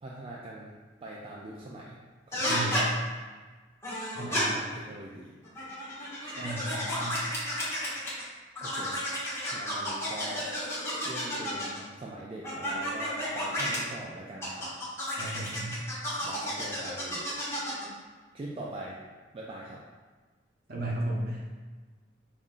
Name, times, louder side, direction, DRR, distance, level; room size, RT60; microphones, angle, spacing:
voice 1, 0.0-0.7 1.0-2.0 2.3-2.8 4.1-5.3 8.6-9.0 9.5-10.5 11.0-14.7 16.2-17.3 18.3-19.0 19.3-19.8, right 1 dB, 30° right, -4 dB, 0.3 m, -42 dB
sound 1, 2.3-2.8 3.8-4.4 5.4-8.2 8.5-11.8 12.4-13.8 14.4-17.9, equal, 15° left, 1.1 m, -32 dB
voice 2, 2.4-2.8 4.1-4.5 6.3-7.2 15.2-15.7 20.7-21.4, right 1 dB, 55° right, -3 dB, 0.9 m, -34 dB
5.4 x 2.5 x 2.5 m, 1.4 s
head